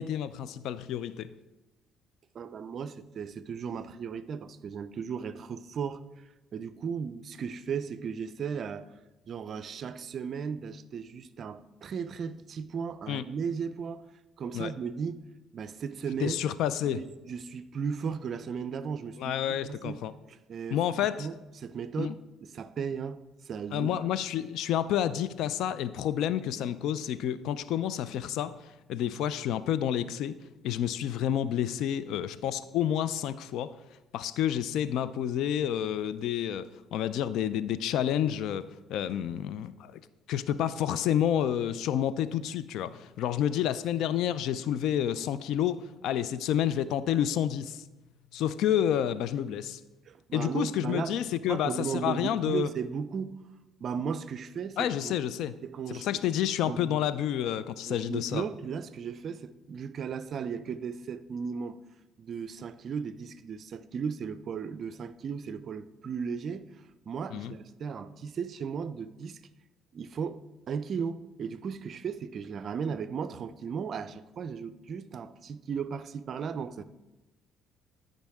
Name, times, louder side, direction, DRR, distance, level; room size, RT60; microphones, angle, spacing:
voice 1, 0.0-1.3 13.1-13.2 14.5-14.7 16.2-17.0 19.2-20.1 20.7-21.3 22.0-22.1 23.7-28.5 28.9-30.3 30.6-33.7 34.1-40.0 40.3-47.8 48.3-49.8 50.3-52.7 54.8-55.5 55.9-58.4 67.3-67.5, left 10 dB, 75° left, 0.4 m, -29 dB
voice 2, 2.3-6.0 6.5-8.9 9.3-14.0 14.4-15.2 15.5-16.4 16.9-19.3 19.6-20.0 20.3-20.8 21.2-23.2 23.4-24.1 50.1-51.1 51.5-53.4 53.8-55.2 55.6-56.1 56.6-57.0 57.9-61.8 62.2-66.7 67.1-69.4 69.9-70.4 70.7-76.8, right 6 dB, 50° right, 0.5 m, -36 dB
13.0 x 5.3 x 3.6 m
cardioid pair, 100°, 0 cm